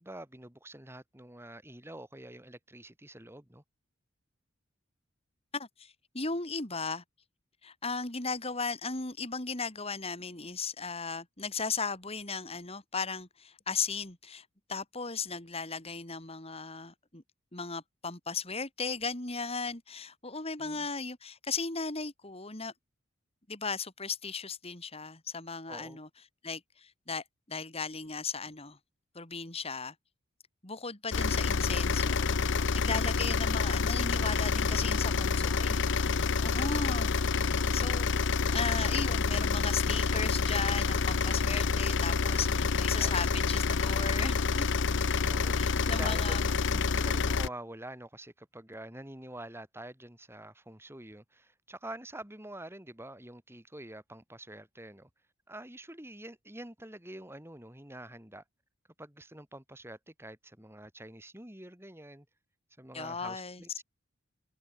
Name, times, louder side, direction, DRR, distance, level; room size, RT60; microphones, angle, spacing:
voice 1, 0.0-3.6 20.6-20.9 25.7-26.0 36.4-36.9 42.4-42.5 43.0-43.3 45.3-46.4 46.6-55.1 55.5-58.4 59.0-62.2 62.8-63.8, right 1 dB, 10° right, 3.3 m, -46 dB
voice 2, 5.5-7.0 7.6-17.2 17.5-22.7 23.5-26.1 26.4-28.8 29.1-29.9 30.6-37.3 37.7-38.1 38.5-44.7 45.5-46.4 62.9-63.6, left 4 dB, 30° left, 3.1 m, -36 dB
sound 1, 31.1-47.5, left 4 dB, 60° left, 0.7 m, -28 dB
head